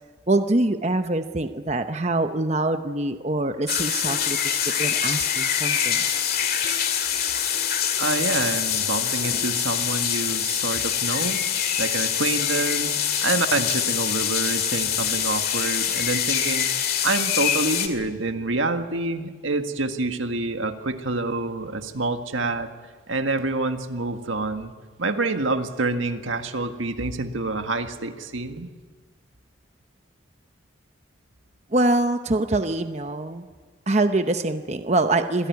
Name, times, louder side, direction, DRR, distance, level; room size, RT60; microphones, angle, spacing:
voice 1, 0.3-6.1 31.7-33.5 33.9-35.5, right 2 dB, 35° right, 8 dB, 0.8 m, -24 dB
sound 1, 3.7-17.9, left 9 dB, 50° left, 2.3 m, -24 dB
voice 2, 8.0-16.7 17.0-22.7 23.1-24.7 25.0-28.7, right 3 dB, 85° right, 6 dB, 1.7 m, -27 dB
26.5 x 17.5 x 9.5 m, 1.5 s
head